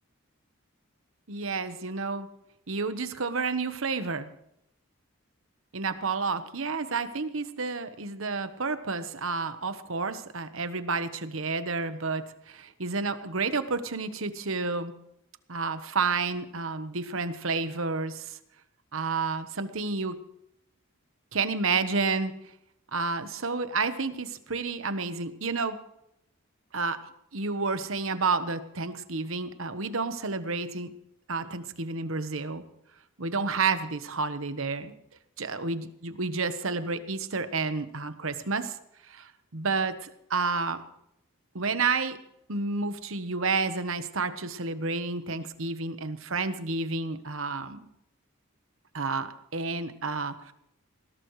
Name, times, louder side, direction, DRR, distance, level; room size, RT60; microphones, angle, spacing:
voice 1, 1.3-2.3 2.7-4.3 5.7-14.9 15.5-18.4 18.9-20.2 21.3-22.3 22.9-25.8 26.7-27.0 27.3-30.9 31.3-32.6 33.2-34.9 35.4-38.8 39.0-40.8 41.5-42.2 42.5-47.8 48.9-50.5, right 4 dB, 65° right, 11 dB, 1.1 m, -30 dB
20.0 x 17.0 x 3.2 m, 0.78 s
head